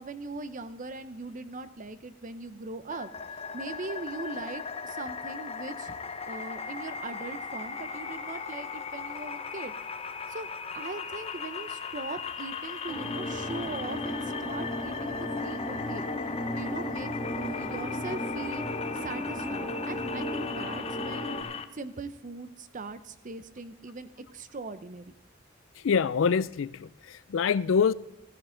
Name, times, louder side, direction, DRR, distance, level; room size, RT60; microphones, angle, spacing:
voice 1, 0.0-6.0 6.3-9.8 10.3-10.5 10.7-16.1 16.6-17.1 17.4-21.3 21.7-25.1, right 3 dB, 40° right, 0.7 m, -40 dB
sound 1, 2.9-21.6, left 6 dB, 30° left, 0.6 m, -38 dB
sound 2, 12.9-21.4, left 1 dB, 10° left, 3.1 m, -35 dB
voice 2, 25.8-27.9, left 6 dB, 70° left, 0.4 m, -25 dB
14.5 x 14.0 x 3.8 m
head